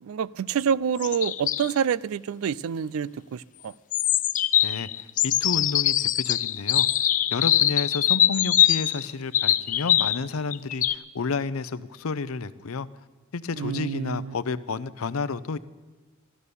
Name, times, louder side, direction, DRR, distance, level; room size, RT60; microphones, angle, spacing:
voice 1, 0.0-3.7 13.6-14.3, right 7 dB, 75° right, 0.4 m, -27 dB
sound 1, 1.0-1.7 3.9-10.2 10.5-10.9, left 12 dB, 40° left, 0.4 m, -23 dB
voice 2, 4.6-6.9 7.3-12.9 13.3-15.6, left 4 dB, 90° left, 0.6 m, -31 dB
14.0 x 11.5 x 6.8 m
head